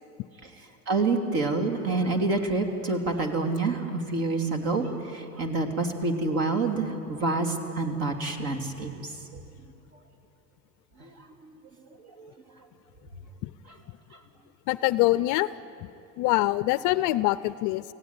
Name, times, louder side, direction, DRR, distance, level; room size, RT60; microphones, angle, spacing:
voice 1, 0.9-9.1 11.0-11.1 11.5-11.6 12.0-12.3, right 3 dB, 50° right, 4 dB, 3.0 m, -27 dB
voice 2, 14.7-15.5 16.2-17.8, left 18 dB, 45° left, 15 dB, 0.5 m, -24 dB
24.0 x 16.5 x 9.7 m, 2.7 s
supercardioid pair, 120°, 46 cm